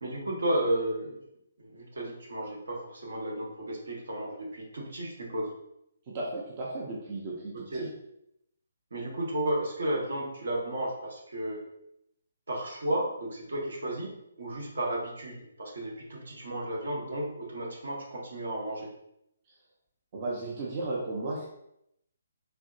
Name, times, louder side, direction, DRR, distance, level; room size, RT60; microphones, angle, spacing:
voice 1, 0.0-1.2 1.6-5.5 7.7-7.9 8.9-11.7 12.5-18.9, right 1 dB, 65° right, -1 dB, 0.8 m, -33 dB
voice 2, 6.1-7.9 20.1-21.5, right 2 dB, 35° right, -4 dB, 0.6 m, -35 dB
3.3 x 2.6 x 2.6 m, 0.78 s
figure-of-eight pair, 140°, 0 cm